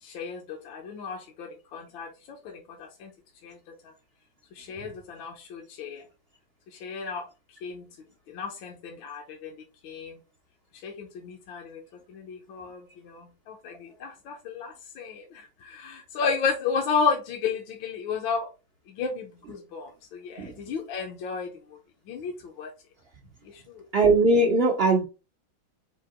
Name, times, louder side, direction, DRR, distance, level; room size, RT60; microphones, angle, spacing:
voice 1, 0.0-3.1 3.4-3.6 4.5-6.0 6.7-7.3 7.6-7.8 8.3-9.5 9.8-10.2 10.8-11.8 12.1-18.5 19.0-21.5 22.1-22.7 23.5-23.8, left 5 dB, 75° left, 1.5 m, -33 dB
voice 2, 23.9-25.0, right 2 dB, 60° right, 0.6 m, -20 dB
4.6 x 2.8 x 3.6 m
omnidirectional pair, 2.2 m